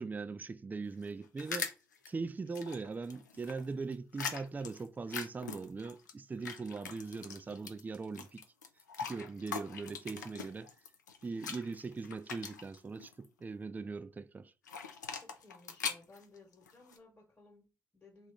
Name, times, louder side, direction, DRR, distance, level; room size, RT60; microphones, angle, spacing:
voice 1, 0.0-1.7 2.1-8.4 9.0-10.7 11.2-14.5, right 4 dB, 20° right, 0.3 m, -40 dB
sound 1, 0.9-2.1 2.5-6.1 6.4-13.3 14.6-17.0, left 6 dB, 85° left, 0.4 m, -42 dB
voice 2, 15.2-18.3, left 3 dB, 20° left, 1.2 m, -59 dB
2.8 x 2.4 x 3.5 m
figure-of-eight pair, 40°, 9 cm